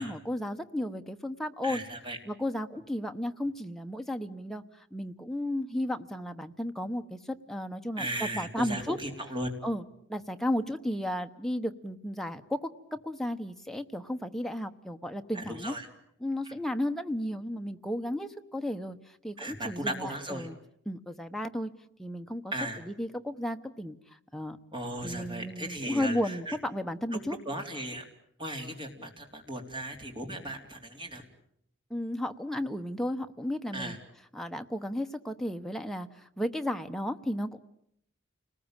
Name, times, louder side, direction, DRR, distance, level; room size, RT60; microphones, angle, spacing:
voice 1, 0.0-1.8 2.2-4.6 4.9-9.0 9.6-9.8 10.1-15.8 16.2-19.0 19.2-20.6 20.9-21.7 22.0-22.4 22.8-24.0 24.3-24.6 25.0-27.4 31.9-34.0 34.3-37.6, left 1 dB, ahead, 5 dB, 1.0 m, -34 dB
voice 2, 1.6-2.2 8.0-9.5 15.3-15.9 16.4-16.5 19.4-20.5 22.5-22.8 24.7-26.5 27.4-28.0 28.4-31.2 33.7-34.0, right 1 dB, 25° right, 3 dB, 3.5 m, -36 dB
29.5 x 20.0 x 9.0 m, 0.74 s
head